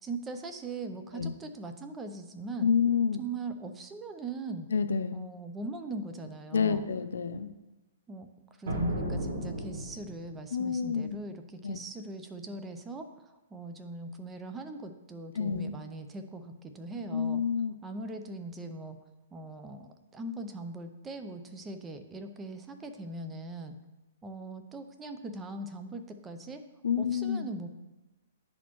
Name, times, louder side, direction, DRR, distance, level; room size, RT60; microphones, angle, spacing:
voice 1, 0.0-2.7 3.2-4.7 5.1-6.9 8.1-8.3 8.6-17.4 17.8-19.0 19.3-23.8 24.2-26.6 27.0-27.7, right 2 dB, 15° right, 7 dB, 0.5 m, -40 dB
voice 2, 2.6-3.2 4.7-5.2 6.5-7.5 10.5-11.2 11.6-11.8 15.3-15.7 17.1-17.7 26.8-27.5, left 6 dB, 85° left, 11 dB, 0.4 m, -28 dB
sound 1, 8.6-10.4, equal, 60° right, 1.8 m, -33 dB
10.0 x 4.2 x 3.0 m, 1.0 s
hypercardioid pair, 150°, 0 cm